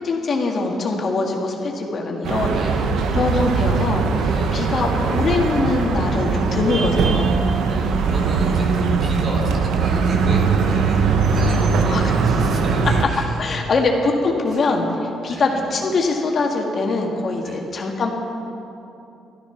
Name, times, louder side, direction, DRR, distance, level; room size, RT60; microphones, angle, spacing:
voice 1, 0.0-2.6 3.1-7.4 11.9-12.0 13.4-18.1, left 3 dB, 50° left, 0 dB, 2.0 m, -23 dB
sound 1, 2.2-13.1, right 4 dB, 80° right, 1.0 m, -20 dB
voice 2, 2.5-3.2 4.3-4.6 7.7-13.9 15.3-15.5 17.4-17.6, right 1 dB, 50° right, -1 dB, 3.6 m, -34 dB
13.0 x 13.0 x 5.9 m, 2.8 s
cardioid pair, 90°, 0 cm